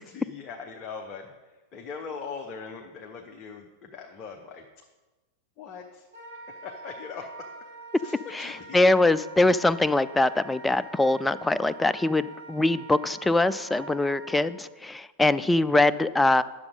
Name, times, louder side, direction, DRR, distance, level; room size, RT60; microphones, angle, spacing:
voice 1, 0.0-1.3 1.7-4.8 5.6-6.1 6.5-7.5 8.0-8.9, left 5 dB, 30° left, 3 dB, 0.8 m, -41 dB
Wind instrument woodwind instrument, 6.1-14.5, right 2 dB, 65° right, 1.5 m, -45 dB
voice 2, 8.3-16.4, left 2 dB, 10° left, 16 dB, 0.3 m, -23 dB
9.7 x 7.0 x 5.2 m, 1.2 s
figure-of-eight pair, 90°, 0 cm